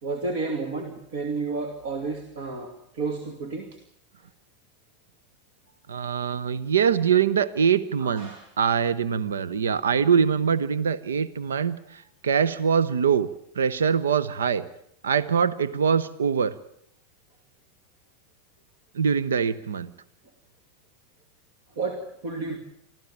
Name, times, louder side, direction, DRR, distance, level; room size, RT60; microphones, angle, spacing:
voice 1, 0.0-3.7 8.0-8.5 21.8-22.6, right 3 dB, 60° right, 6 dB, 2.6 m, -31 dB
voice 2, 5.9-13.3 13.6-14.6 15.0-16.5 18.9-19.9, right 7 dB, 75° right, 18 dB, 0.8 m, -23 dB
25.5 x 15.0 x 8.7 m, 0.71 s
figure-of-eight pair, 90°, 0 cm